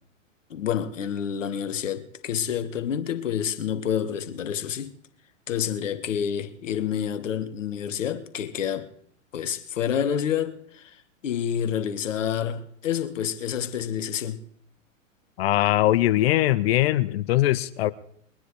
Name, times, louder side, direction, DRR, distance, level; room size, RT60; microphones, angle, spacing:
voice 1, 0.5-4.9 5.5-8.9 9.3-11.0 11.2-14.4, left 9 dB, 70° left, 1.7 m, -28 dB
voice 2, 15.4-17.9, left 15 dB, 50° left, 0.8 m, -21 dB
22.5 x 9.9 x 4.9 m
hypercardioid pair, 105°, 39 cm